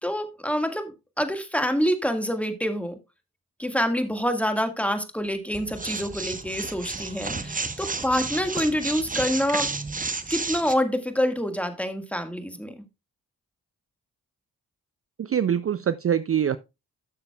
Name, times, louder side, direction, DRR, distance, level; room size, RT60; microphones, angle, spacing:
voice 1, 0.0-3.0 3.6-9.7 10.3-12.7, equal, 5° left, 1.7 m, -26 dB
sound 1, 5.5-10.7, right 3 dB, 20° right, 0.9 m, -32 dB
voice 2, 15.2-16.6, right 9 dB, 40° right, 0.5 m, -24 dB
13.0 x 6.6 x 2.3 m
supercardioid pair, 40°, 38 cm